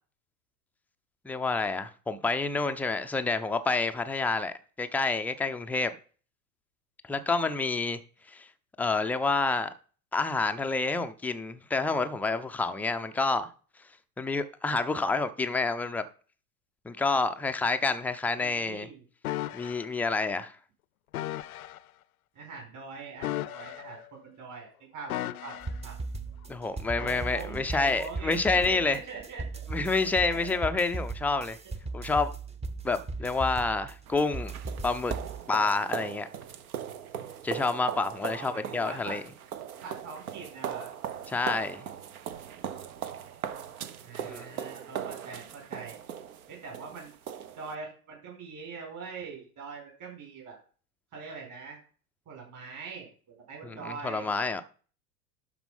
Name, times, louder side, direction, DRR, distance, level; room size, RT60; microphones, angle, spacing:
voice 1, 1.2-5.9 7.1-8.0 8.3-8.5 8.8-9.7 10.1-13.5 14.2-16.0 16.8-18.9 19.5-20.5 26.5-29.0 29.7-31.6 31.9-32.3 32.8-34.5 34.8-35.1 35.5-36.3 37.4-39.2 41.3-41.8 44.2-44.5 53.6-54.6, left 3 dB, 5° left, 0.4 m, -28 dB
voice 2, 18.4-19.0 22.3-26.0 26.9-29.7 30.0-30.6 31.6-31.7 33.2-33.3 38.2-39.2 39.8-40.9 42.6-42.7 44.0-46.0 46.5-47.1 47.6-50.6 51.1-51.8 52.3-54.3, right 5 dB, 40° right, 4.6 m, -43 dB
sound 1, 19.2-19.9 21.1-21.8 23.2-24.1 25.1-25.8 27.0-27.2, left 15 dB, 65° left, 0.6 m, -35 dB
sound 2, 25.6-35.4, right 3 dB, 15° right, 0.8 m, -37 dB
sound 3, 34.1-47.8, right 8 dB, 65° right, 1.1 m, -39 dB
11.5 x 4.3 x 5.4 m
figure-of-eight pair, 85°, 47 cm